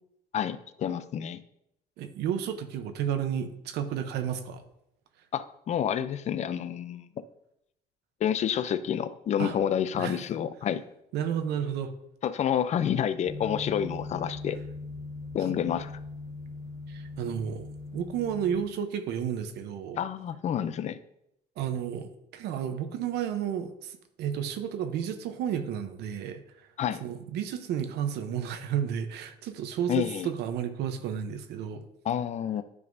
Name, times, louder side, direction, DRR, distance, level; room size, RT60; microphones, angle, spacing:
voice 1, 0.3-1.4 5.3-7.0 8.2-10.8 12.2-14.6 15.3-15.9 20.0-21.0 26.8-27.0 29.9-30.3 32.0-32.6, left 9 dB, 40° left, 13 dB, 0.4 m, -29 dB
voice 2, 2.0-4.6 9.4-9.6 10.0-10.2 11.1-11.9 16.9-17.7 17.9-20.0 21.6-26.4 27.0-31.8, right 8 dB, 80° right, 8 dB, 0.7 m, -32 dB
sound 1, 13.2-18.6, left 3 dB, 90° left, 1.4 m, -40 dB
9.5 x 5.3 x 2.6 m, 0.79 s
cardioid pair, 110°, 17 cm